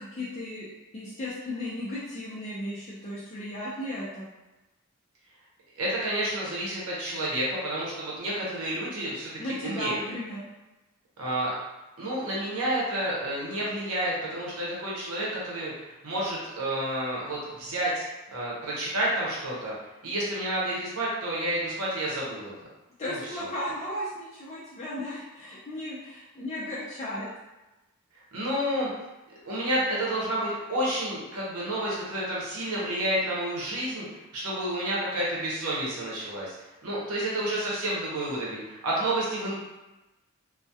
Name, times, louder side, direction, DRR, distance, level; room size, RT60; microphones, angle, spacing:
voice 1, 0.0-4.3 9.4-10.4 23.0-27.3, left 1 dB, 30° left, -9 dB, 0.4 m, -35 dB
voice 2, 5.8-9.3 9.6-10.0 11.2-11.5 12.0-19.7 20.0-22.5 23.1-23.2 28.3-28.9 29.4-34.0 34.3-36.5 36.8-39.6, right 1 dB, 85° right, -6 dB, 0.7 m, -30 dB
2.2 x 2.0 x 2.7 m, 1.0 s
head